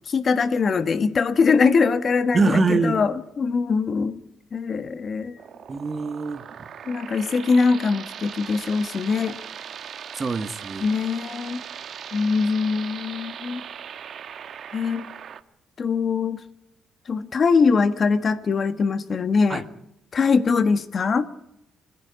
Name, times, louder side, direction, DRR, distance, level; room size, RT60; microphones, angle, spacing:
voice 1, 0.1-4.2 4.5-5.4 6.9-9.3 10.8-11.6 12.1-13.6 14.7-15.1 15.8-16.4 17.1-19.6 20.1-21.3, left 5 dB, 45° left, 11 dB, 1.6 m, -22 dB
voice 2, 2.3-3.0 5.7-6.4 10.1-10.9 19.5-19.6, right 3 dB, 30° right, 9 dB, 1.8 m, -23 dB
sound 1, 5.4-15.4, right 8 dB, 60° right, 1.3 m, -39 dB
29.5 x 11.0 x 9.9 m, 0.80 s
cardioid pair, 90°, 0 cm